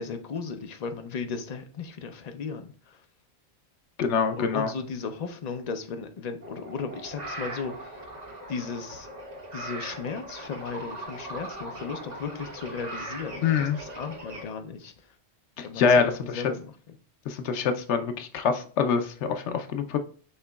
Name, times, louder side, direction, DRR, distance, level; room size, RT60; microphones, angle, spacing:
voice 1, 0.0-3.0 4.3-8.0 8.5-9.1 9.5-15.1 15.6-17.0, left 5 dB, 45° left, 7 dB, 0.6 m, -36 dB
voice 2, 4.0-4.7 13.4-13.8 15.6-16.1 17.3-20.0, left 6 dB, 85° left, 7 dB, 0.9 m, -25 dB
sound 1, 6.4-14.4, right 1 dB, 40° right, 1.2 m, -40 dB
6.6 x 2.9 x 2.3 m, 0.43 s
omnidirectional pair, 1.1 m